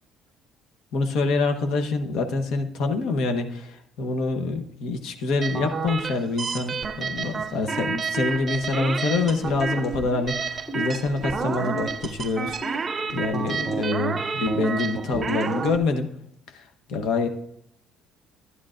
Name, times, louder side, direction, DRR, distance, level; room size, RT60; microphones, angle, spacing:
voice 1, 0.9-16.1 16.5-16.6 16.9-17.3, left 3 dB, 60° left, 6 dB, 1.0 m, -26 dB
sound 1, 5.4-15.8, right 5 dB, 20° right, 0.3 m, -30 dB
sound 2, 8.7-10.0 10.7-11.9 12.6-13.8 14.5-15.8, right 1 dB, 15° left, 3.4 m, -37 dB
12.0 x 11.0 x 2.5 m, 0.74 s
cardioid pair, 180°, 0 cm